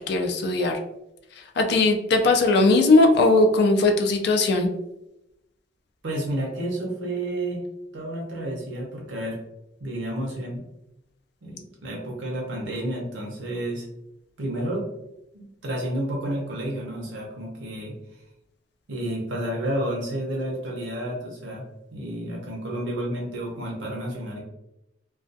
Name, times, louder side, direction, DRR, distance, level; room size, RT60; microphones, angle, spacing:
voice 1, 0.1-0.7 1.6-4.7, left 2 dB, 60° left, 4 dB, 0.4 m, -19 dB
voice 2, 6.0-7.6 7.9-9.4 9.8-10.6 11.4-13.9 14.4-14.9 15.3-18.0 18.9-21.6 21.9-24.4, right 1 dB, 90° right, -2 dB, 0.6 m, -30 dB
2.3 x 2.2 x 2.6 m, 0.88 s
head